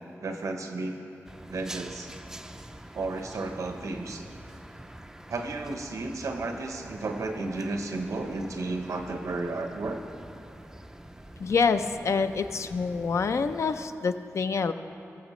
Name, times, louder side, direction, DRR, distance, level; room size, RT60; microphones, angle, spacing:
voice 1, 0.2-1.0 1.5-2.1 2.9-4.2 5.3-10.0, right 3 dB, 85° right, 5 dB, 0.8 m, -33 dB
sound 1, 1.2-13.9, right 1 dB, 10° right, 0.3 m, -46 dB
voice 2, 11.4-14.7, left 5 dB, 65° left, 10 dB, 0.4 m, -26 dB
19.5 x 7.4 x 3.1 m, 2.7 s
wide cardioid pair, 130°, 5 cm